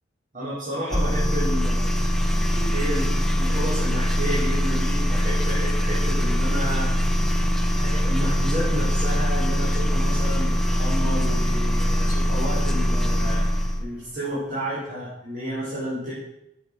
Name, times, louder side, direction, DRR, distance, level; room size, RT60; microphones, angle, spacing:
voice 1, 0.3-2.0 2.5-7.0 7.7-13.4 13.8-16.1, equal, 40° right, -10 dB, 5.4 m, -31 dB
sound 1, 0.9-13.9, equal, ahead, 1.0 m, -22 dB
12.0 x 9.0 x 6.5 m, 0.84 s
head